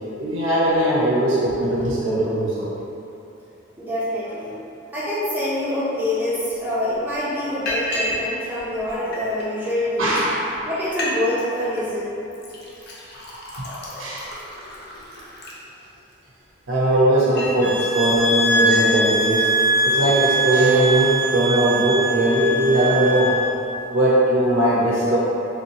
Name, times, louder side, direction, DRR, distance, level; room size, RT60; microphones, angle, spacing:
voice 1, 0.2-2.7 10.0-10.4 13.6-13.7 14.0-14.3 16.7-19.5 19.8-23.4 23.9-25.2, right 1 dB, 70° right, -7 dB, 0.5 m, -19 dB
voice 2, 3.8-4.5 4.9-10.2 10.6-12.2, left 1 dB, 10° right, -12 dB, 0.8 m, -25 dB
Liquid, 6.5-6.6 6.9-7.2 7.7-8.2 8.6-9.5 10.1-10.2 10.5-10.6 10.8-11.1 11.4-11.8 12.3-16.1 16.7-17.7 18.1-18.2 18.5-18.9, left 1 dB, 50° left, 0.5 m, -32 dB
sound 1, 17.6-23.5, right 2 dB, 70° left, 1.0 m, -22 dB
3.3 x 2.7 x 2.8 m, 2.9 s
head